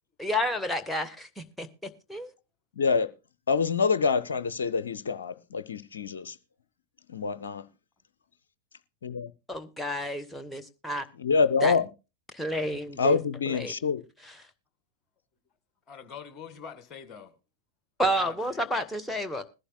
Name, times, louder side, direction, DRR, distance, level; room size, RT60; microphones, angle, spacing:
voice 1, 0.2-2.3 9.5-11.1 11.6-11.8 12.3-13.2 13.5-13.7 18.0-19.4, equal, 5° left, 1.1 m, -30 dB
voice 2, 2.8-3.1 3.5-6.4 7.1-7.7 9.0-9.3 11.2-11.9 13.0-14.0, left 5 dB, 65° left, 0.6 m, -26 dB
voice 3, 15.9-17.3 18.0-18.8, left 7 dB, 25° left, 1.9 m, -45 dB
21.0 x 11.0 x 2.3 m
figure-of-eight pair, 90°, 0 cm